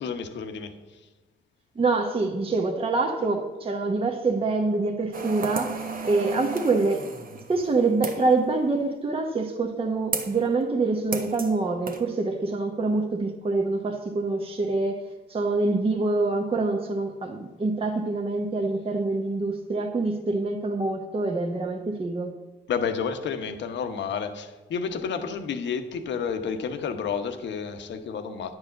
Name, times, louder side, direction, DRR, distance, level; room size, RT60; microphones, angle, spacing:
voice 1, 0.0-0.7 22.7-28.6, left 6 dB, 65° left, 8 dB, 1.0 m, -30 dB
voice 2, 1.8-5.8 6.0-7.0 7.5-15.0 15.3-22.3, right 3 dB, 30° right, 2 dB, 0.9 m, -25 dB
sound 1, 5.1-8.3 10.1-10.4 11.1-11.5 11.9-12.0, right 4 dB, 45° right, 1.2 m, -33 dB
9.9 x 4.8 x 7.5 m, 1.2 s
cardioid pair, 90°, 20 cm